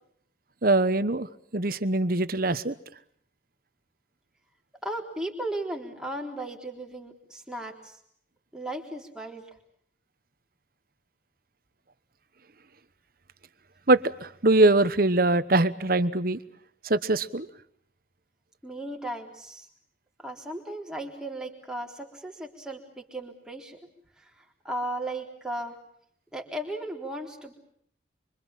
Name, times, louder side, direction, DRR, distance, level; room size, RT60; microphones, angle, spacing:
voice 1, 0.6-1.3 1.5-2.7 13.9-16.4 16.8-17.5, right 2 dB, 50° right, 14 dB, 1.1 m, -22 dB
voice 2, 4.8-8.0 8.5-9.4 18.6-19.7 20.2-23.8 24.2-25.8 26.3-27.5, right 1 dB, 5° right, 1 dB, 3.8 m, -36 dB
26.0 x 25.5 x 7.4 m, 0.66 s
head